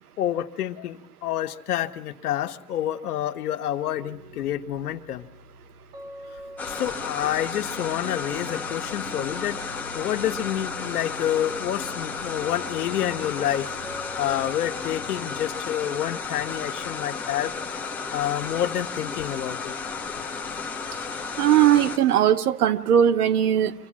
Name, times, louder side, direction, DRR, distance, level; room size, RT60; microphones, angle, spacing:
voice 1, 0.2-5.3 6.7-13.7 14.2-17.5 18.1-19.8, left 11 dB, 75° left, 8 dB, 1.2 m, -28 dB
sound 1, 3.9-15.4, equal, 40° right, 3.6 m, -44 dB
sound 2, 6.6-22.0, left 5 dB, 5° left, 0.8 m, -33 dB
voice 2, 21.4-23.7, right 10 dB, 75° right, 11 dB, 1.1 m, -19 dB
25.0 x 16.5 x 7.4 m, 0.92 s
supercardioid pair, 160°, 45 cm